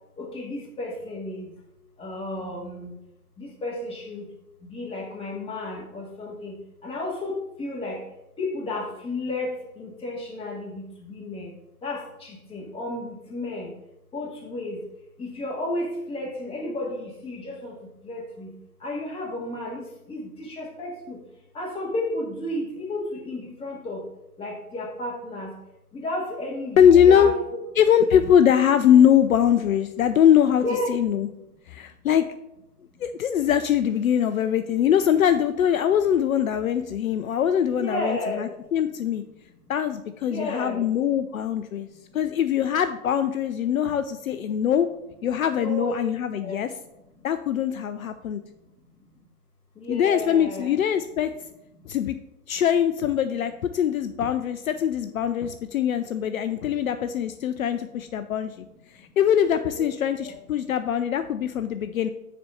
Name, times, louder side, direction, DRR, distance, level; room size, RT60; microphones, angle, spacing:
voice 1, 0.2-1.5 2.0-2.9 3.4-4.3 4.7-6.6 6.8-8.0 8.4-11.5 11.8-13.7 14.1-14.8 15.2-17.7 18.0-18.5 18.8-21.2 21.5-24.0 24.4-25.5 25.9-27.3 28.1-28.3 30.6-30.9 37.7-38.4 40.2-40.8 45.5-46.0 46.4-46.6 49.8-50.8 59.7-59.8 60.2-60.4, left 1 dB, 10° left, -2 dB, 1.7 m, -32 dB
voice 2, 26.8-27.3 27.8-31.3 31.7-32.2 33.0-39.2 39.7-41.9 42.1-44.9 45.2-46.7 47.2-48.4 49.9-51.3 51.9-52.2 52.5-58.6 59.2-62.1, left 9 dB, 65° left, 9 dB, 0.6 m, -22 dB
6.7 x 4.3 x 6.3 m, 0.90 s
figure-of-eight pair, 115°, 45 cm